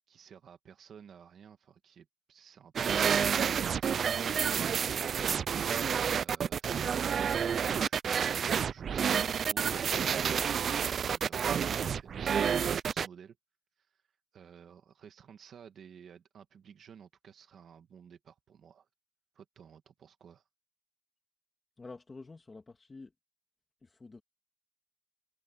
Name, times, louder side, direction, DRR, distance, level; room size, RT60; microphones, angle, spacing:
voice 1, 0.1-5.2 6.1-7.4 7.8-13.4 13.8-14.0 14.3-18.9 19.4-20.4, right 7 dB, 90° right, 1.7 m, -54 dB
sound 1, 2.8-13.1, right 7 dB, 70° right, 0.3 m, -29 dB
voice 2, 21.8-23.1 23.8-24.2, left 3 dB, 30° left, 2.0 m, -48 dB
wide cardioid pair, 130°, 0 cm